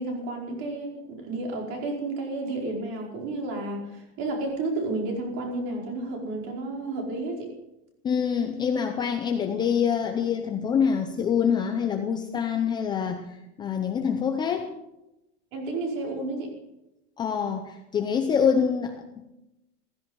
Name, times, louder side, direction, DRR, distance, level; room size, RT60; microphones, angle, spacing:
voice 1, 0.0-7.5 15.5-16.5, right 2 dB, 40° right, 1 dB, 4.8 m, -31 dB
voice 2, 8.0-13.2 13.6-14.7 17.2-19.2, left 7 dB, 15° left, 4 dB, 0.7 m, -25 dB
16.0 x 15.5 x 5.4 m, 0.90 s
supercardioid pair, 180°, 33 cm